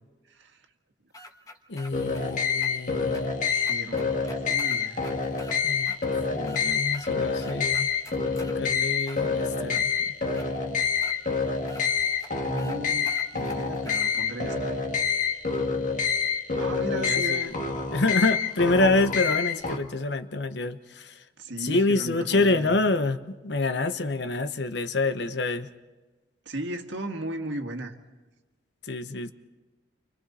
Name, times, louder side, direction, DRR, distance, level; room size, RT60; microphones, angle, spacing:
sound 1, 1.1-2.2 2.6-2.7 3.1-3.2 3.7-5.6 5.9-6.0 6.3-7.1 7.4-8.6 9.0-9.8 10.3-10.5 11.0-11.1 11.7-11.8 12.2-12.3 12.6-12.8 13.0-14.1, left 1 dB, 20° left, 1.3 m, -45 dB
voice 1, 1.7-3.4 5.6-5.9 6.3-7.9 8.4-10.1 16.9-17.5 17.9-21.1 21.6-25.7 28.9-29.3, left 2 dB, 70° left, 10 dB, 1.0 m, -27 dB
sound 2, 1.9-19.8, left 5 dB, 45° left, 1.7 m, -27 dB
voice 2, 3.4-5.1 12.5-14.8 16.5-17.5 21.4-22.7 26.4-28.0, right 1 dB, 90° right, 4 dB, 1.8 m, -36 dB
30.0 x 25.0 x 4.2 m, 1.3 s
head